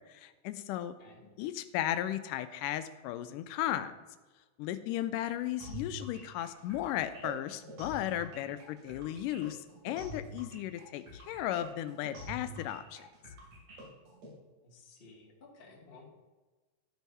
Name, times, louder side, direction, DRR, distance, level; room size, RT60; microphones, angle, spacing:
voice 1, 0.0-1.0 1.4-3.9 4.6-13.1, left 12 dB, 85° left, 11 dB, 2.1 m, -35 dB
sound 1, 5.6-14.3, equal, 70° right, 3.7 m, -46 dB
voice 2, 14.6-16.1, left 3 dB, 30° left, -2 dB, 1.1 m, -55 dB
13.0 x 4.6 x 5.4 m, 1.3 s
omnidirectional pair, 3.7 m